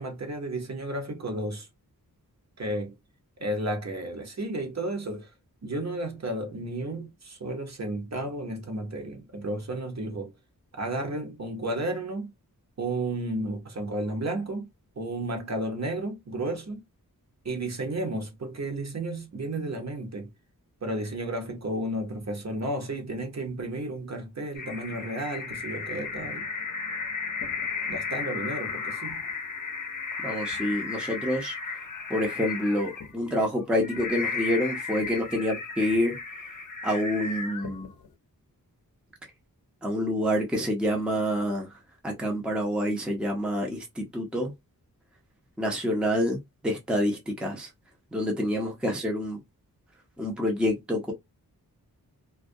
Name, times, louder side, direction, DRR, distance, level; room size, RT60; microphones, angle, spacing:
voice 1, 0.0-1.7 2.6-2.9 3.4-5.3 5.6-10.3 10.7-12.3 12.8-14.7 15.0-16.8 17.4-20.3 20.8-26.5 27.9-29.2, right 1 dB, 50° right, 0.8 m, -32 dB
sound 1, 24.5-38.1, left 5 dB, 60° left, 0.6 m, -34 dB
voice 2, 30.2-31.5 32.1-36.2 36.8-37.9 39.8-41.7 42.0-44.5 45.6-47.7 48.1-49.4 50.2-51.1, equal, 5° right, 0.6 m, -27 dB
2.3 x 2.1 x 2.6 m
wide cardioid pair, 110°, 36 cm